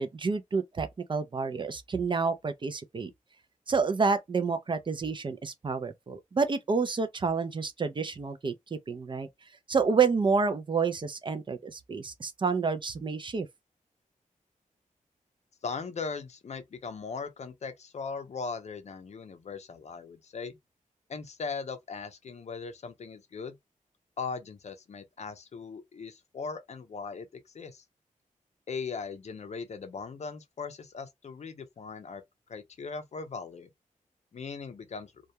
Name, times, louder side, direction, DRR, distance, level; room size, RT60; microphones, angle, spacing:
voice 1, 0.0-3.1 3.7-9.3 9.7-13.5, right 5 dB, 35° right, 0.4 m, -29 dB
voice 2, 15.6-20.6 21.1-23.6 24.2-27.3 27.5-27.8 28.7-32.2 32.5-33.7 34.3-35.1, left 5 dB, 55° left, 0.5 m, -39 dB
2.3 x 2.1 x 2.7 m
wide cardioid pair, 110°, 14 cm